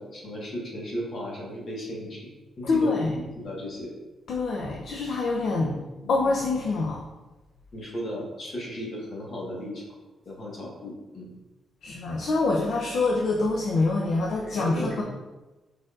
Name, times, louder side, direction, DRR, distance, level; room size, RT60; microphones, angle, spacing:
voice 1, 0.0-2.3 2.6-2.9 3.2-3.9 5.5-6.1 7.7-9.8 10.2-11.3 14.3-15.0, equal, 55° left, -3 dB, 1.3 m, -35 dB
voice 2, 2.6-3.2 4.3-5.7 6.1-7.0 11.8-15.0, left 3 dB, 70° left, -1 dB, 0.5 m, -25 dB
4.9 x 4.4 x 2.4 m, 1.1 s
cardioid pair, 100°, 0 cm